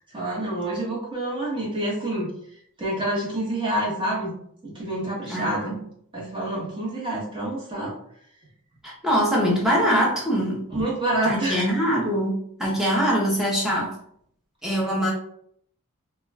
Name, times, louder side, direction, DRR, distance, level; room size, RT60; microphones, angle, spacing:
voice 1, 0.1-2.3 2.8-4.3 4.6-5.8 6.1-7.9 10.7-11.7, right 1 dB, 20° right, -5 dB, 1.0 m, -27 dB
voice 2, 5.3-5.8 8.8-10.6 11.2-13.9 14.6-15.1, equal, ahead, -4 dB, 0.6 m, -23 dB
2.3 x 2.3 x 3.2 m, 0.68 s
head